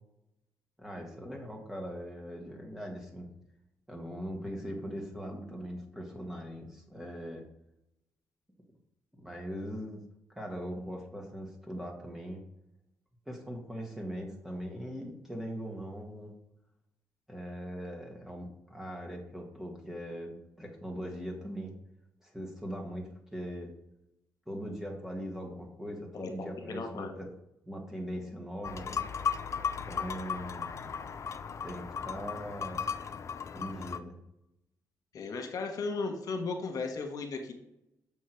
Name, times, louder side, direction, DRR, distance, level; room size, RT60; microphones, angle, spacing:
voice 1, 0.8-3.3 3.9-7.4 9.1-10.0 10.3-12.4 13.3-16.3 17.3-21.7 22.2-23.7 24.5-27.3 27.6-29.0 29.9-30.7 31.6-32.9 33.5-34.2, equal, 5° right, 0 dB, 1.7 m, -40 dB
voice 2, 26.7-27.1 35.1-37.5, left 4 dB, 60° left, 5 dB, 1.4 m, -35 dB
sound 1, 28.6-34.0, left 6 dB, 45° left, 0.5 m, -36 dB
6.3 x 5.6 x 4.6 m, 0.85 s
cardioid pair, 80°, 7 cm